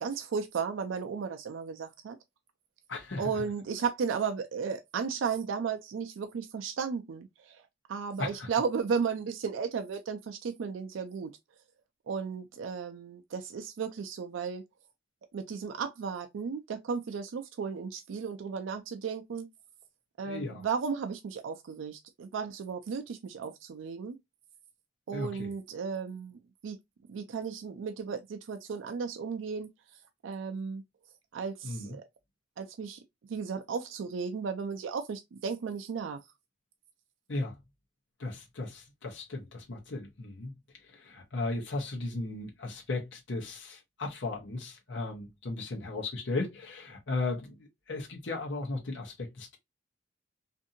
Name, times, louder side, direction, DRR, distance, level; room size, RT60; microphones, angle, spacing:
voice 1, 0.0-2.2 3.2-7.6 7.9-11.3 12.1-14.6 15.3-19.5 20.2-24.2 25.1-26.8 27.1-29.7 30.2-30.8 31.3-32.0 32.6-33.0 33.3-36.2, right 6 dB, 80° right, 0.4 m, -34 dB
voice 2, 2.9-3.5 8.2-8.5 20.2-20.6 25.1-25.5 31.6-32.0 37.3-37.6 38.2-40.5 40.9-49.6, left 2 dB, 65° left, 0.8 m, -36 dB
2.6 x 2.6 x 2.5 m
head